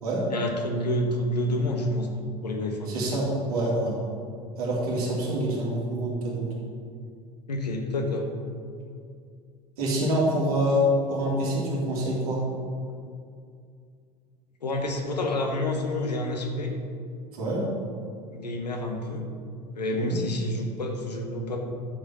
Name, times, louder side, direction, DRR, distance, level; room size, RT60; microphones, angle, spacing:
voice 1, 0.3-2.1 2.4-2.9 7.5-8.3 14.6-16.7 18.3-19.2 19.7-21.6, left 1 dB, 75° left, 2 dB, 1.5 m, -28 dB
voice 2, 2.9-4.0 4.6-6.5 9.8-12.4 17.3-17.6 19.9-20.2, equal, 65° right, -3 dB, 2.8 m, -26 dB
11.5 x 7.4 x 4.4 m, 2.3 s
figure-of-eight pair, 75°, 21 cm